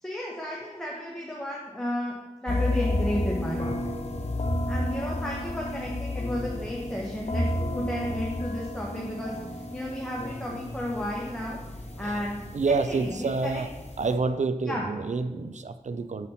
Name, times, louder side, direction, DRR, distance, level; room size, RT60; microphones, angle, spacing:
voice 1, 0.0-2.1 2.4-3.8 4.7-7.5 7.7-9.3 9.7-13.6 14.6-14.8, left 1 dB, 5° left, -3 dB, 1.2 m, -33 dB
sound 1, 2.5-14.1, left 1 dB, 55° left, 1.0 m, -32 dB
voice 2, 12.5-13.7 14.0-16.3, right 4 dB, 65° right, 11 dB, 0.4 m, -28 dB
5.8 x 4.2 x 5.5 m, 1.1 s
wide cardioid pair, 40°, 13 cm